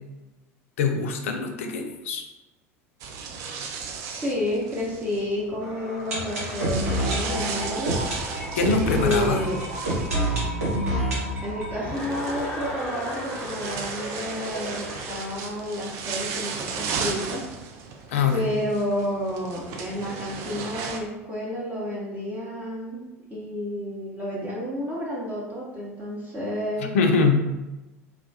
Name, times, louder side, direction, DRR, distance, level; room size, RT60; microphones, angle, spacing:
voice 1, 0.8-2.2 8.5-9.4 18.1-18.3 26.9-27.4, left 5 dB, 65° left, 4 dB, 0.3 m, -23 dB
sound 1, 3.0-21.0, right 5 dB, 45° right, 0.3 m, -36 dB
voice 2, 4.1-8.0 8.8-9.6 11.4-17.4 18.3-26.9, left 1 dB, 20° right, -6 dB, 0.7 m, -30 dB
sound 2, 5.6-13.4 13.6-13.7 13.9-14.0 14.6-14.7, right 1 dB, 75° right, 0.8 m, -28 dB
Chuckle chortle, 11.7-15.4, equal, 10° left, 1.1 m, -35 dB
2.2 x 2.1 x 2.6 m, 1.0 s
figure-of-eight pair, 75°, 8 cm